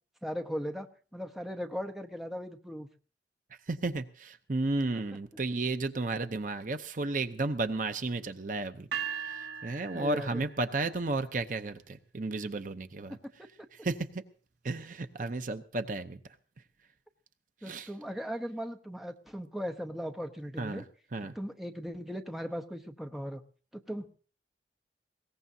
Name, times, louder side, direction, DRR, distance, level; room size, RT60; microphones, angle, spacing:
voice 1, 0.2-2.9 4.9-5.0 9.9-10.5 17.6-20.8 21.3-23.4 23.7-24.1, equal, ahead, 5 dB, 0.8 m, -38 dB
voice 2, 3.7-8.9 9.2-13.2 13.8-14.2 14.6-16.2 17.6-17.9 20.6-20.8 21.1-21.3, right 2 dB, 45° right, 9 dB, 0.7 m, -33 dB
sound 1, 8.9-11.0, right 8 dB, 75° right, 1.2 m, -39 dB
21.0 x 18.0 x 2.7 m, 0.41 s
head